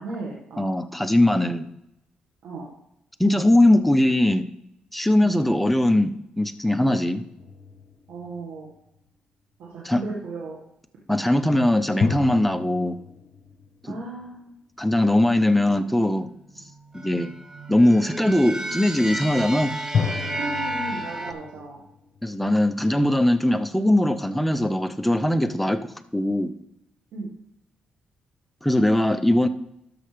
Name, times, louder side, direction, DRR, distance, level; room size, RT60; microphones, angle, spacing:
voice 1, 0.0-0.7 2.4-2.7 5.2-5.3 8.1-8.7 9.6-10.6 13.9-14.5 20.3-21.8 27.1-27.3, right 2 dB, 80° right, -4 dB, 1.7 m, -35 dB
voice 2, 0.6-1.7 3.2-4.5 4.9-7.2 9.8-10.0 11.1-13.0 13.9-14.0 14.8-16.3 16.9-17.3 17.7-19.7 22.2-26.5 28.6-29.5, left 1 dB, 5° left, 9 dB, 0.6 m, -20 dB
sound 1, 7.4-9.0 12.0-14.7 19.9-22.9, left 6 dB, 65° left, 0.9 m, -32 dB
sound 2, 16.7-21.3, right 1 dB, 20° right, 1.1 m, -32 dB
12.5 x 6.3 x 3.4 m, 0.83 s
cardioid pair, 80°, 3 cm